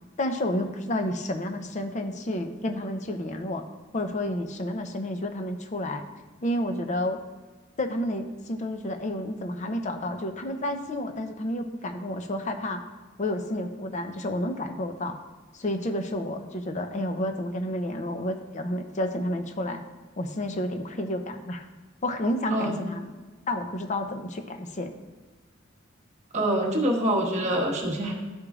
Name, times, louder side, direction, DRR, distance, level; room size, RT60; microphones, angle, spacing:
voice 1, 0.2-3.6 3.9-6.0 6.4-7.2 7.8-12.8 13.2-15.2 15.5-19.8 20.2-21.6 22.0-23.1 23.5-24.9, left 1 dB, 35° left, 6 dB, 0.6 m, -30 dB
voice 2, 22.5-22.8 26.3-28.1, right 1 dB, 35° right, -2 dB, 1.3 m, -25 dB
13.0 x 4.9 x 2.4 m, 1.3 s
head